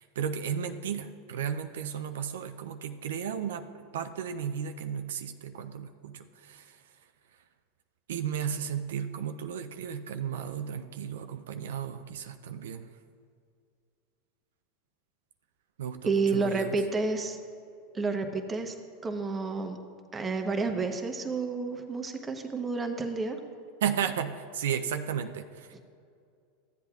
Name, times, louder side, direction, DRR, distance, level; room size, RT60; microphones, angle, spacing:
voice 1, 0.0-6.8 8.1-12.9 15.8-16.8 23.8-25.8, right 8 dB, 80° right, 7 dB, 0.4 m, -34 dB
voice 2, 16.0-17.4 17.9-18.7 19.0-19.8 20.1-23.4, right 4 dB, 20° right, 5 dB, 0.9 m, -30 dB
14.0 x 8.0 x 2.3 m, 2.4 s
hypercardioid pair, 110°, 0 cm